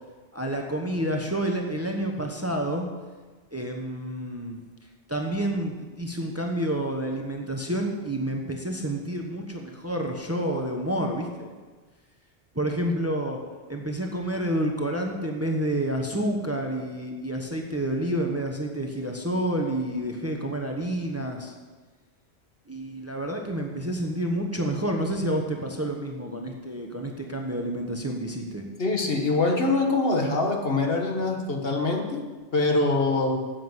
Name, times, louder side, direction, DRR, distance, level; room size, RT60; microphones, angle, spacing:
voice 1, 0.3-2.9 3.5-4.6 5.1-11.5 12.5-13.4 13.7-21.5 22.7-28.7, right 1 dB, 15° right, 2 dB, 1.1 m, -29 dB
voice 2, 28.8-32.2 32.5-33.4, left 3 dB, 55° left, 3 dB, 1.6 m, -24 dB
9.4 x 7.9 x 8.1 m, 1.3 s
omnidirectional pair, 1.2 m